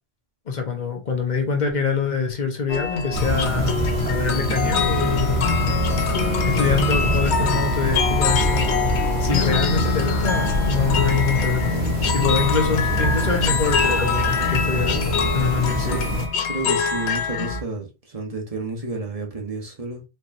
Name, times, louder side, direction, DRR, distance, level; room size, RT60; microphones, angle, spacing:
voice 1, 0.5-3.8 4.0-5.5 6.4-8.9 9.2-11.7 12.1-15.1 15.3-16.0, left 5 dB, 45° left, 0.9 m, -25 dB
sound 1, 2.7-17.6, left 6 dB, 85° left, 1.0 m, -25 dB
sound 2, 3.1-16.3, right 1 dB, 70° right, 1.2 m, -24 dB
voice 2, 15.7-16.1 16.5-20.0, right 3 dB, 35° right, 0.9 m, -31 dB
4.4 x 3.0 x 2.5 m
omnidirectional pair, 1.1 m